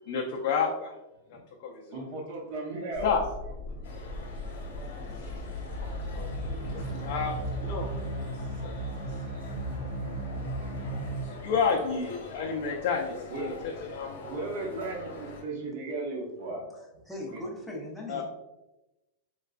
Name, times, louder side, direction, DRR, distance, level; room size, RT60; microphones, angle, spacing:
voice 1, 0.0-0.9 1.3-2.0 3.0-3.2 4.0-4.1 5.1-5.4 5.8-6.3 6.6-8.0 8.3-8.9 9.3-9.8 11.2-14.4 18.1-18.2, left 5 dB, 55° left, -1 dB, 0.4 m, -32 dB
voice 2, 1.9-3.1 13.3-13.5 14.2-16.6 17.3-17.4, right 2 dB, 55° right, 0 dB, 0.8 m, -35 dB
sound 1, 2.9-11.2, right 1 dB, 85° right, 0.8 m, -36 dB
sound 2, 3.8-15.4, left 2 dB, 85° left, 0.9 m, -45 dB
voice 3, 16.7-18.2, left 1 dB, ahead, -3 dB, 0.6 m, -39 dB
3.8 x 2.2 x 2.4 m, 0.98 s
supercardioid pair, 145°, 0 cm